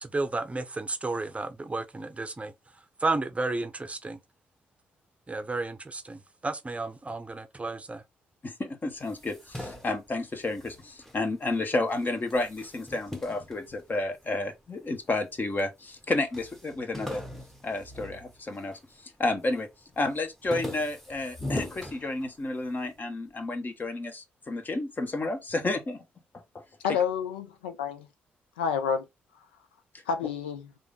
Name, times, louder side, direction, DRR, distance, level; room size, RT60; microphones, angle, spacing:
voice 1, 0.0-2.5 3.0-4.2 5.3-8.0, right 3 dB, 25° right, 0.6 m, -32 dB
voice 2, 8.4-17.2 17.6-19.7 20.0-26.0 26.5-26.6, left 2 dB, 35° left, 1.0 m, -31 dB
sound 1, 8.9-11.6 11.9-14.4 15.0-15.7 16.0-16.1 16.3-18.9 19.3-19.7 20.1-22.7, left 1 dB, 5° left, 0.9 m, -40 dB
voice 3, 26.8-28.1 28.6-29.1 30.1-30.7, left 6 dB, 85° left, 0.4 m, -29 dB
3.4 x 2.6 x 3.7 m
hypercardioid pair, 40°, 6 cm